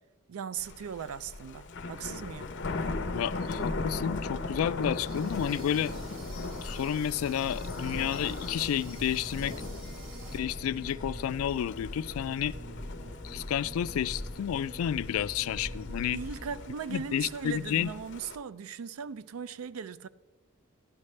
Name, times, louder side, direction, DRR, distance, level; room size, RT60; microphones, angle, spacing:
voice 1, 0.3-2.6 16.1-20.1, right 7 dB, 85° right, 0.4 m, -38 dB
Thunder, 0.6-18.3, left 3 dB, 60° left, 0.7 m, -39 dB
sound 1, 2.0-16.6, left 1 dB, 45° right, 1.4 m, -44 dB
voice 2, 3.1-5.9 6.6-9.6 10.3-12.5 13.2-16.2 16.9-17.9, left 9 dB, 85° left, 0.3 m, -31 dB
sound 2, 5.0-10.4, right 3 dB, 65° right, 2.1 m, -51 dB
11.5 x 11.5 x 3.2 m
head